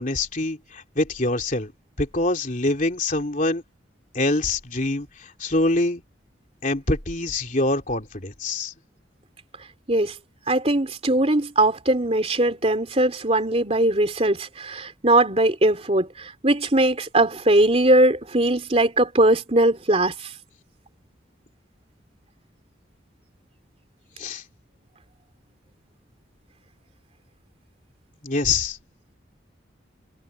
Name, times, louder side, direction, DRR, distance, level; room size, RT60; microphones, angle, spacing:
voice 1, 0.0-1.7 2.0-3.6 4.1-6.0 6.6-8.7 24.2-24.4 28.2-28.8, left 2 dB, 45° left, 3.2 m, -25 dB
voice 2, 10.5-20.3, right 1 dB, 35° right, 3.3 m, -20 dB
head